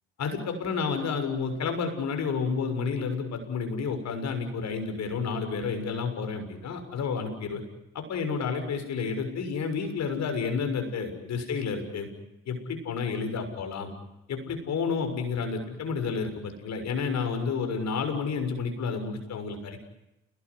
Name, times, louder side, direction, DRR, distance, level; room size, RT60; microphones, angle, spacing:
voice 1, 0.2-7.6 7.9-12.1 12.5-13.9 14.3-19.8, left 5 dB, 60° left, 6 dB, 6.8 m, -30 dB
29.5 x 20.0 x 9.9 m, 0.92 s
hypercardioid pair, 45°, 30 cm